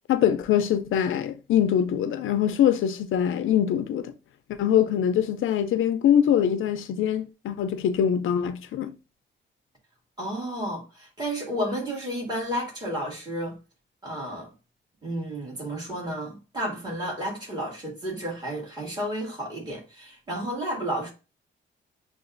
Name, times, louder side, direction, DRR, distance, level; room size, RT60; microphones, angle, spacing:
voice 1, 0.1-4.1 4.6-8.9, left 9 dB, 80° left, 0.5 m, -23 dB
voice 2, 10.2-13.6 14.0-14.5 15.0-21.1, equal, 20° right, 2.1 m, -32 dB
6.8 x 2.4 x 2.5 m
cardioid pair, 125°, 20 cm